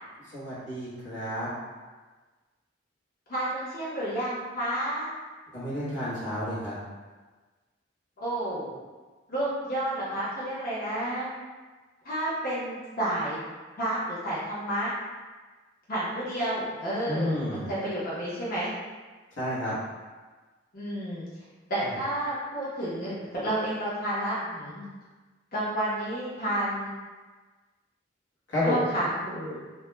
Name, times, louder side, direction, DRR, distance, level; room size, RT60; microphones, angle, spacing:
voice 1, 0.3-1.5 5.5-6.7 17.1-17.7 19.4-19.8 21.8-21.9 28.5-28.9, left 1 dB, 90° left, -9 dB, 1.0 m, -30 dB
voice 2, 3.3-5.1 8.2-8.7 9.3-11.3 12.0-13.4 13.8-14.9 15.9-18.7 20.7-21.3 21.7-24.8 25.5-26.9 28.6-29.6, right 1 dB, 50° left, -9 dB, 0.8 m, -30 dB
2.2 x 2.1 x 3.1 m, 1.3 s
head